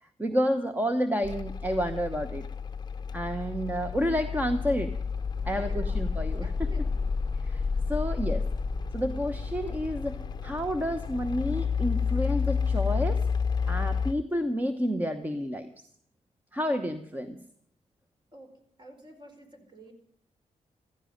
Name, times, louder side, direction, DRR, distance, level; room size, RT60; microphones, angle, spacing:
voice 1, 0.0-2.4 3.1-4.9 5.4-6.5 7.4-7.6 7.9-8.4 8.9-13.2 13.7-15.7 16.5-17.4, equal, 15° right, 8 dB, 1.0 m, -30 dB
sound 1, 1.2-14.1, left 5 dB, 35° left, 0.7 m, -30 dB
voice 2, 5.5-6.0 6.4-7.1 7.7-8.1 18.3-18.5 18.8-19.9, equal, 35° right, 4 dB, 4.5 m, -49 dB
15.5 x 14.5 x 5.3 m, 0.66 s
cardioid pair, 110°, 13 cm